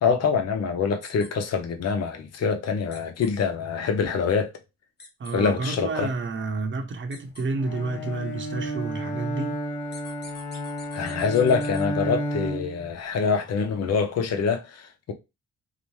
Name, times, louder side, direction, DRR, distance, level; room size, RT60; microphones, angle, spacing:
voice 1, 0.0-4.5 5.3-6.1 10.9-15.1, left 5 dB, 55° left, 0.7 m, -25 dB
sound 1, 1.0-1.3 2.9-3.3 5.0-5.3 7.1-7.4 9.9-11.8, left 3 dB, 35° left, 1.0 m, -46 dB
voice 2, 5.2-9.6, right 3 dB, 40° right, 0.8 m, -30 dB
Bowed string instrument, 7.6-12.9, equal, 90° left, 0.9 m, -31 dB
2.8 x 2.1 x 3.1 m
cardioid pair, 90°, 30 cm